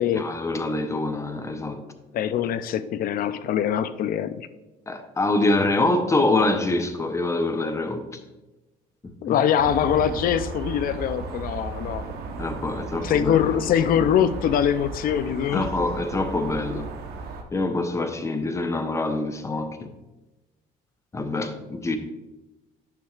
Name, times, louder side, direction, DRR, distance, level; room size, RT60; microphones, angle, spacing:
voice 1, 0.2-1.8 4.9-8.1 9.0-9.4 12.4-13.4 15.5-16.9 17.5-19.9 21.1-22.0, left 2 dB, 15° left, 0.7 m, -25 dB
voice 2, 2.1-4.5 9.2-12.1 13.0-15.7, left 9 dB, 60° left, 0.5 m, -23 dB
sound 1, 9.6-17.4, right 3 dB, 70° right, 1.0 m, -35 dB
10.0 x 6.3 x 2.4 m
cardioid pair, 110°, 17 cm